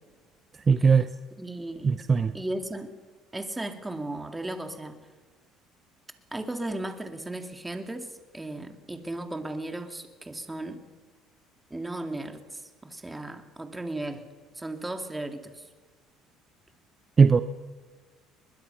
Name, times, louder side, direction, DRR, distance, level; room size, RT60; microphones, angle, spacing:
voice 1, 0.7-1.1 1.8-2.3 17.2-17.4, right 5 dB, 30° right, 11 dB, 0.8 m, -19 dB
voice 2, 1.4-2.0 2.3-2.9 3.3-5.0 6.3-10.8 11.7-14.2 14.5-15.7, right 1 dB, 10° right, 6 dB, 2.4 m, -36 dB
22.5 x 20.5 x 5.8 m, 1.3 s
supercardioid pair, 95°, 0 cm